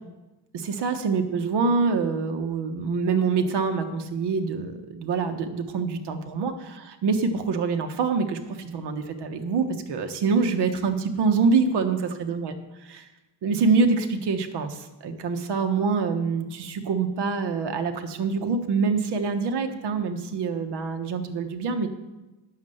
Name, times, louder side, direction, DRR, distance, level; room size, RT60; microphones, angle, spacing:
voice 1, 0.5-12.5 12.8-13.0 13.4-21.9, right 4 dB, 70° right, 7 dB, 1.3 m, -25 dB
9.3 x 6.7 x 7.7 m, 1.0 s
cardioid pair, 135°, 42 cm